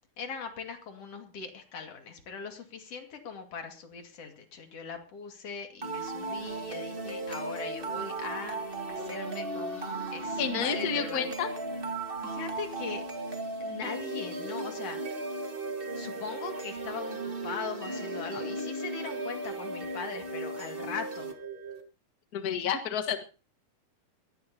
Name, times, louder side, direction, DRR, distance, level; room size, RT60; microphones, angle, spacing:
voice 1, 0.2-8.6 8.9-11.3 12.2-13.0 13.6-15.0 15.9-21.4, left 5 dB, 45° left, 4 dB, 3.0 m, -40 dB
sound 1, 5.8-21.8, right 2 dB, 75° right, 0.5 m, -36 dB
voice 2, 10.4-11.5 22.3-23.2, left 7 dB, 85° left, 7 dB, 0.8 m, -30 dB
21.0 x 15.5 x 2.9 m, 0.32 s
omnidirectional pair, 4.1 m